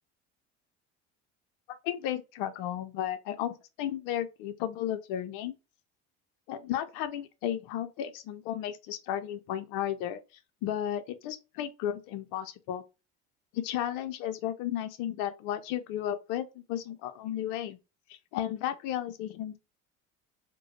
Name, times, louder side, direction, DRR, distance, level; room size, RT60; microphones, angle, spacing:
voice 1, 1.8-5.5 6.5-10.2 10.6-12.8 13.5-17.8 18.1-19.6, left 11 dB, 65° left, 0.6 m, -34 dB
3.7 x 2.2 x 2.9 m
hypercardioid pair, 80°, 33 cm